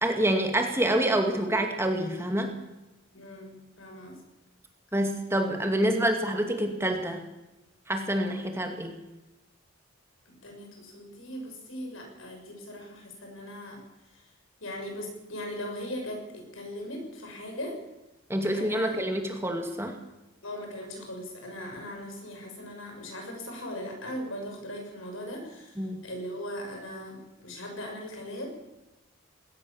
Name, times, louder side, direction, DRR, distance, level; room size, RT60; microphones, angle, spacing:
voice 1, 0.0-2.6 4.9-7.2 7.9-8.9 18.3-20.0 25.8-26.0, right 1 dB, 10° right, 4 dB, 2.2 m, -27 dB
voice 2, 3.1-4.2 10.2-14.3 14.6-17.8 18.5-19.0 20.4-28.5, left 1 dB, 75° left, 2 dB, 6.5 m, -39 dB
20.5 x 18.5 x 7.1 m, 1.0 s
head